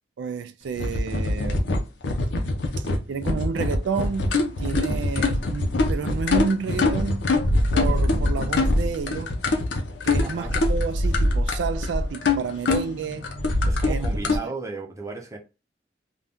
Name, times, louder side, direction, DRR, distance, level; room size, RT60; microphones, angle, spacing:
voice 1, 0.2-1.8 2.8-7.3 7.7-9.3 10.0-13.3 13.9-14.1 14.4-14.5, right 5 dB, 85° right, 0.3 m, -30 dB
sound 1, 0.7-14.4, left 2 dB, 85° left, 0.6 m, -23 dB
voice 2, 10.2-10.5 13.7-15.4, right 3 dB, 20° right, 0.6 m, -34 dB
2.6 x 2.2 x 3.4 m
head